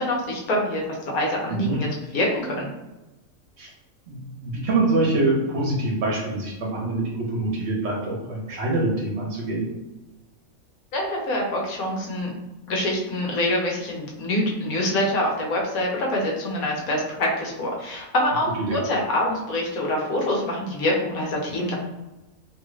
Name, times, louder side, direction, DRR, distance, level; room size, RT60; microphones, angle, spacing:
voice 1, 0.0-1.9 2.1-2.7 10.9-12.3 12.7-21.7, left 1 dB, 90° left, -2 dB, 1.3 m, -25 dB
voice 2, 4.1-9.7 18.7-18.8, right 2 dB, 55° right, -2 dB, 1.0 m, -25 dB
3.0 x 2.4 x 3.1 m, 1.0 s
omnidirectional pair, 1.5 m